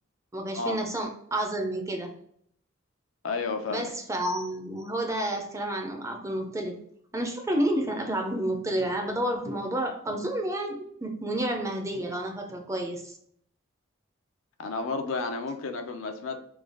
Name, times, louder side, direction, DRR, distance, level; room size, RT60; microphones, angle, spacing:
voice 1, 0.3-2.1 3.7-6.8 7.1-13.2, right 1 dB, 15° right, 3 dB, 0.5 m, -30 dB
voice 2, 3.2-3.9 14.6-16.4, left 3 dB, 85° left, 6 dB, 0.5 m, -31 dB
3.2 x 2.3 x 3.5 m, 0.66 s
head